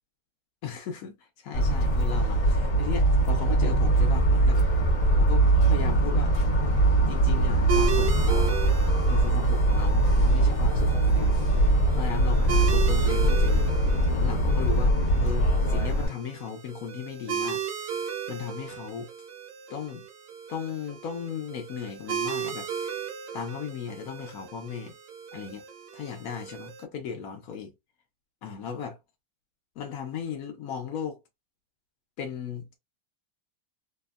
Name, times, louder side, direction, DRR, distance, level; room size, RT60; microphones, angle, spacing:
voice 1, 0.6-4.6 5.2-6.3 7.1-8.6 9.1-13.7 14.1-17.9 18.3-19.1 19.7-20.0 20.5-23.0 23.3-24.9 25.3-25.6 25.9-27.7 28.4-29.0 29.8-31.2 32.2-32.7, left 7 dB, 80° left, 0.8 m, -36 dB
Motor vehicle (road) / Siren, 1.5-16.1, right 1 dB, 35° left, 1.2 m, -22 dB
sound 1, 7.7-26.8, right 7 dB, 85° right, 1.4 m, -36 dB
sound 2, 8.4-9.2, right 1 dB, 50° left, 0.3 m, -33 dB
3.3 x 2.1 x 2.3 m
omnidirectional pair, 2.0 m